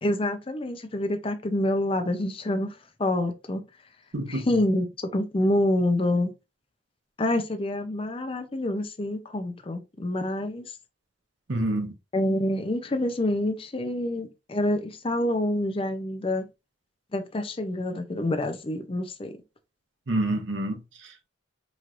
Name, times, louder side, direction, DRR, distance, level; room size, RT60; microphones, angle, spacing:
voice 1, 0.0-3.6 4.3-4.9 5.1-6.3 7.2-10.7 12.1-16.4 17.1-19.3, left 1 dB, 30° left, 0.5 m, -27 dB
voice 2, 4.1-4.5 11.5-11.9 20.1-21.3, right 1 dB, 75° right, 0.8 m, -28 dB
4.4 x 3.1 x 2.5 m
head